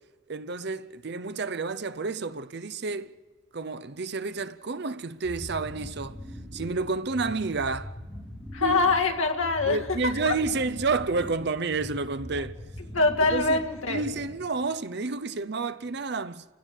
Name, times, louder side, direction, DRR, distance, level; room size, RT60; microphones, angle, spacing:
voice 1, 0.3-3.1 3.5-6.2 6.5-8.0 8.6-8.8 9.7-12.6 13.3-13.6 13.9-16.5, right 4 dB, 55° right, 0.6 m, -30 dB
sound 1, 5.2-14.5, left 1 dB, ahead, 6.5 m, -41 dB
voice 2, 8.5-10.4 12.4-12.5 12.9-14.0, left 3 dB, 80° left, 2.0 m, -24 dB
29.5 x 16.5 x 6.5 m
head